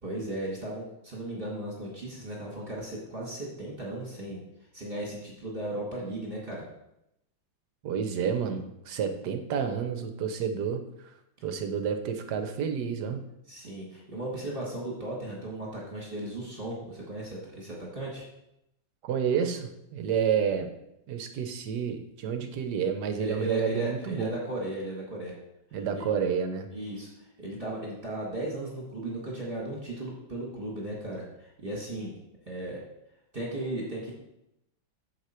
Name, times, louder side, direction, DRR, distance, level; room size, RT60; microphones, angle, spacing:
voice 1, 0.0-4.4 4.7-6.6 13.5-18.2 23.2-25.3 25.7-26.0 26.7-32.1 32.5-32.8 33.3-34.1, right 1 dB, 30° right, -4 dB, 1.9 m, -36 dB
voice 2, 7.8-10.8 11.4-13.2 19.0-20.7 21.1-24.3 25.7-26.7, right 7 dB, 65° right, 7 dB, 1.3 m, -29 dB
8.1 x 6.8 x 4.4 m, 0.84 s
omnidirectional pair, 2.2 m